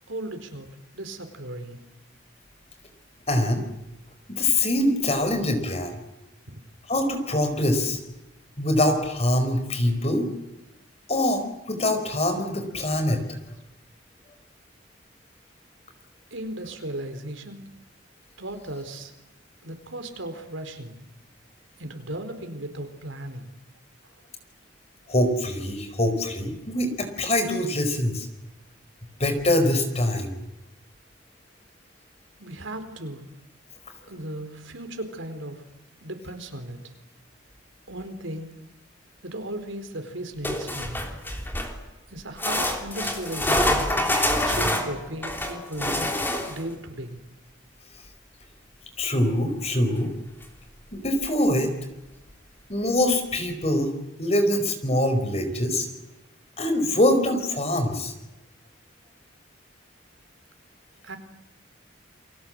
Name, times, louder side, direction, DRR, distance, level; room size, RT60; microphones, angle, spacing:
voice 1, 0.1-0.7 0.9-1.8 6.5-6.6 16.3-17.6 18.4-19.1 19.6-21.0 21.8-23.5 32.4-33.2 34.1-35.6 36.0-36.9 37.9-38.5 39.2-41.0 42.1-43.9 44.4-46.2 46.5-47.2 61.0-61.2, right 1 dB, 75° right, 7 dB, 4.3 m, -36 dB
voice 2, 3.3-3.6 4.3-6.0 6.9-8.0 8.6-10.3 11.1-13.2 25.1-28.3 29.2-30.4 49.0-50.1 50.9-51.7 52.7-53.9 54.2-55.9 56.6-58.1, left 1 dB, 30° left, 7 dB, 4.6 m, -24 dB
sound 1, 40.4-41.8 42.4-46.7 50.0-50.1 50.4-50.5 51.2-51.3, left 1 dB, 10° left, 3.3 m, -26 dB
29.5 x 23.5 x 7.7 m, 0.93 s
head